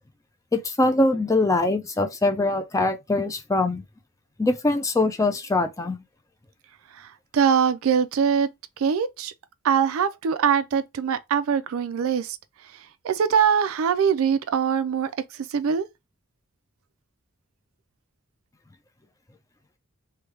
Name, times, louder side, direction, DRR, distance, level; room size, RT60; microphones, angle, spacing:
voice 1, 0.5-3.8 4.4-6.0, left 2 dB, 15° left, 0.4 m, -23 dB
voice 2, 7.0-8.5 8.8-9.3 9.6-12.4 13.0-15.1 15.5-15.9, right 7 dB, 80° right, 0.4 m, -22 dB
3.2 x 2.3 x 3.2 m
head